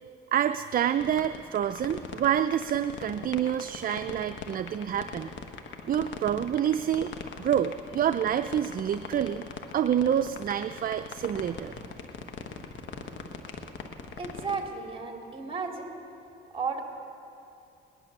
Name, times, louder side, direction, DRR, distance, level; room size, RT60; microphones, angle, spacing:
voice 1, 0.3-5.3 5.9-7.1 7.4-9.5 9.7-11.7, right 9 dB, 45° right, 10 dB, 0.4 m, -27 dB
sound 1, 1.0-14.6, left 6 dB, 70° left, 1.2 m, -40 dB
voice 2, 14.2-15.9 16.5-16.8, right 5 dB, 30° right, 2 dB, 2.5 m, -33 dB
19.0 x 11.0 x 6.6 m, 2.7 s
cardioid pair, 90°, 20 cm